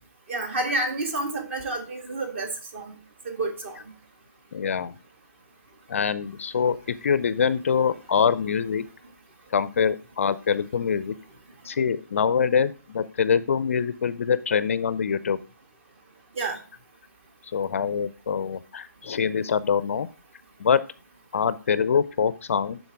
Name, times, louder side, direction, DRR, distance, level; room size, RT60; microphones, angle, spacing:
voice 1, 0.3-2.9 3.2-3.8 16.4-16.6, right 2 dB, 40° right, 5 dB, 1.6 m, -29 dB
voice 2, 4.5-4.9 5.9-8.8 9.5-11.1 11.6-15.4 17.5-20.1 20.6-20.8 21.3-22.8, left 6 dB, 45° left, 15 dB, 0.4 m, -24 dB
10.5 x 4.0 x 3.4 m, 0.35 s
figure-of-eight pair, 145°, 10 cm